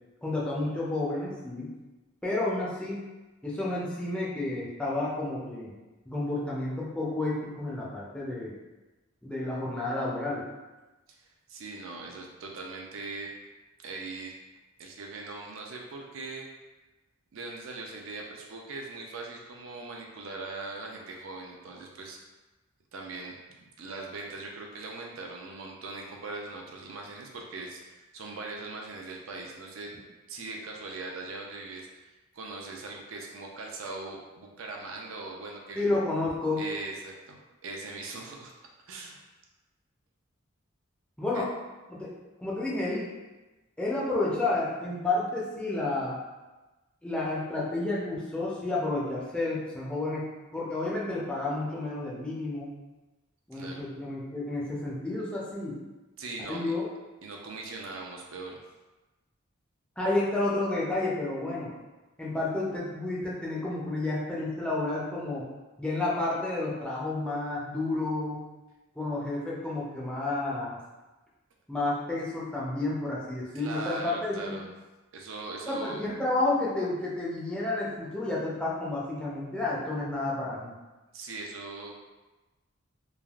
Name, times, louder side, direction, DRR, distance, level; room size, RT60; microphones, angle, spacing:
voice 1, 0.2-1.7 2.2-3.0 3.4-5.7 6.1-8.5 9.2-10.5 35.7-36.6 41.2-41.5 41.9-42.1 42.4-43.1 43.8-46.2 47.0-50.2 50.5-52.7 53.5-55.8 56.5-56.9 60.0-61.7 62.2-65.5 65.8-68.4 69.0-70.7 71.7-74.6 75.7-80.7, left 2 dB, 5° left, -6 dB, 0.5 m, -30 dB
voice 2, 11.1-13.3 13.8-14.3 14.8-16.5 17.3-22.2 22.9-23.4 23.8-29.9 30.3-36.0 36.6-38.5 38.9-39.2 41.3-41.4 53.5-53.9 56.2-56.7 57.2-58.6 73.5-74.7 75.1-76.0 81.1-81.9, right 3 dB, 70° right, 0 dB, 0.5 m, -40 dB
3.3 x 2.4 x 2.3 m, 1.1 s
head